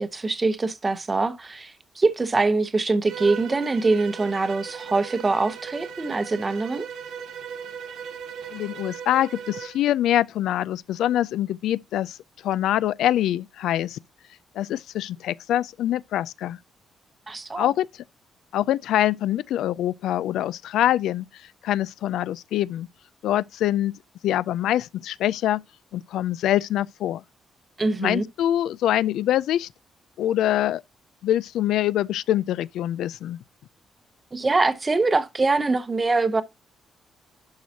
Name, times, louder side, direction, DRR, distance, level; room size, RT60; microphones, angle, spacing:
voice 1, 0.0-6.9 17.3-17.7 27.8-28.2 34.3-36.4, right 3 dB, 20° right, 0.8 m, -23 dB
Bowed string instrument, 3.1-9.8, right 7 dB, 75° right, 1.4 m, -37 dB
voice 2, 8.5-12.2 12.4-14.0 14.6-16.6 17.6-17.9 18.5-21.3 21.6-22.9 23.2-23.9 24.2-25.6 25.9-27.2 28.0-29.7 30.2-30.8 31.2-33.4, left 12 dB, 85° left, 0.3 m, -24 dB
11.5 x 4.6 x 2.8 m
cardioid pair, 170°, 0 cm